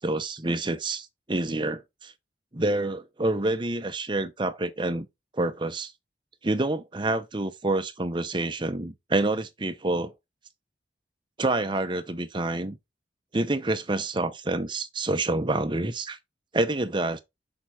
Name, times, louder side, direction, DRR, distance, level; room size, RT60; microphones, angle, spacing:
voice 1, 0.0-2.1 2.5-5.1 5.3-5.9 6.4-10.1 11.4-12.8 13.3-16.2 16.5-17.2, right 2 dB, 25° right, 0.8 m, -27 dB
6.7 x 4.6 x 4.2 m
head